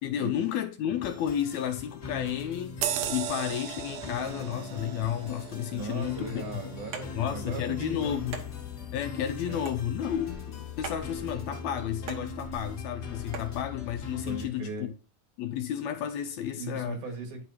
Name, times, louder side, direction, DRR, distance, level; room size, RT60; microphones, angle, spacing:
voice 1, 0.0-6.5 7.1-8.4 8.9-14.9 15.4-17.0, left 10 dB, 80° left, 1.7 m, -32 dB
sound 1, 0.9-14.5, left 5 dB, 45° left, 1.4 m, -41 dB
sound 2, 2.8-7.8 8.2-8.4, right 10 dB, 90° right, 1.4 m, -37 dB
voice 2, 5.7-8.2 9.4-9.7 14.3-14.9 16.6-17.4, right 4 dB, 70° right, 3.2 m, -38 dB
sound 3, 6.9-13.6, right 5 dB, 55° right, 1.5 m, -44 dB
10.5 x 4.7 x 2.8 m
omnidirectional pair, 3.6 m